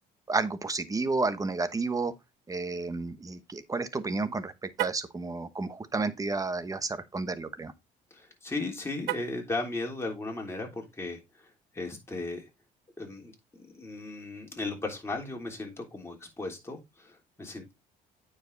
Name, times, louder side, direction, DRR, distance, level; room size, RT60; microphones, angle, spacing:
voice 1, 0.3-2.1 2.5-7.7, right 3 dB, 20° right, 1.1 m, -31 dB
Car, 4.7-5.1 9.0-9.5, right 17 dB, 75° right, 0.5 m, -34 dB
voice 2, 8.1-11.5 11.7-12.5 13.0-17.7, left 2 dB, 15° left, 3.2 m, -36 dB
9.1 x 5.0 x 3.9 m
cardioid pair, 110°, 17 cm